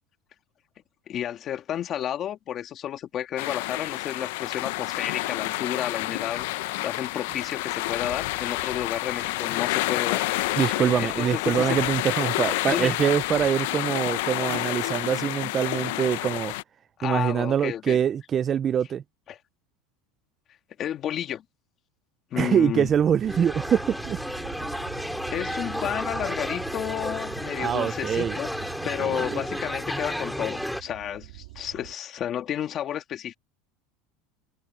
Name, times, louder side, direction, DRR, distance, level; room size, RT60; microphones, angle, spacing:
voice 1, 1.1-6.5 6.8-11.8 12.7-13.0 17.0-18.0 19.3-19.4 20.8-21.4 22.3-22.9 25.3-28.5 28.8-33.3, left 10 dB, 35° left, 2.2 m, -31 dB
sound 1, 3.4-16.6, left 19 dB, 75° left, 0.6 m, -29 dB
voice 2, 10.6-16.5 17.0-19.0 22.4-24.2 27.5-28.4 29.0-29.4, right 8 dB, 25° right, 0.4 m, -24 dB
sound 2, 22.8-31.9, right 20 dB, 85° right, 3.8 m, -44 dB
sound 3, 23.3-30.8, equal, ahead, 4.7 m, -32 dB
supercardioid pair, 145°, 0 cm